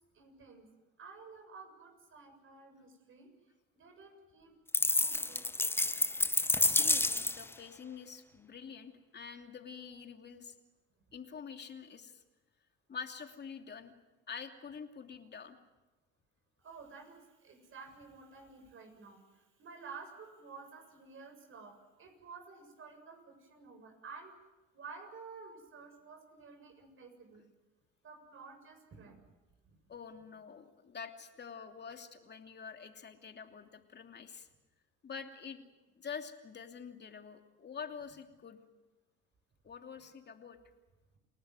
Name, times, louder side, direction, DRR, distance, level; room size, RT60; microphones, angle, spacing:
voice 1, 0.1-0.7 1.0-3.3 3.7-5.7 16.6-24.3 24.7-27.5 28.0-29.2 29.6-29.8, right 4 dB, 40° right, 5 dB, 7.3 m, -52 dB
sound 1, 4.7-7.5, left 2 dB, 5° left, 0.8 m, -29 dB
voice 2, 6.5-10.5 11.1-12.2 12.9-13.9 14.3-15.5 29.9-34.5 35.0-35.6 36.0-38.6 39.6-40.6, left 6 dB, 35° left, 5 dB, 2.9 m, -46 dB
28.5 x 18.5 x 7.9 m, 1.1 s
hypercardioid pair, 70°, 30 cm